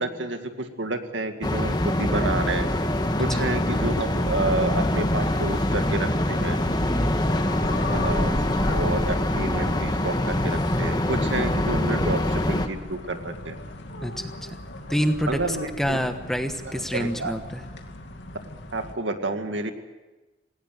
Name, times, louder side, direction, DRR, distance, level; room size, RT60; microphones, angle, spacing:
voice 1, 0.0-2.7 3.2-6.6 7.9-8.4 8.7-13.6 15.3-16.0 16.7-17.3 18.7-19.7, right 2 dB, 85° right, 6 dB, 2.2 m, -29 dB
sound 1, 1.4-12.7, left 1 dB, 20° left, 1.4 m, -24 dB
sound 2, 3.5-18.9, left 1 dB, 80° left, 2.4 m, -38 dB
voice 2, 6.8-7.2 14.0-14.6 14.9-17.6, equal, ahead, 7 dB, 1.2 m, -28 dB
19.0 x 18.5 x 9.4 m, 1.1 s
head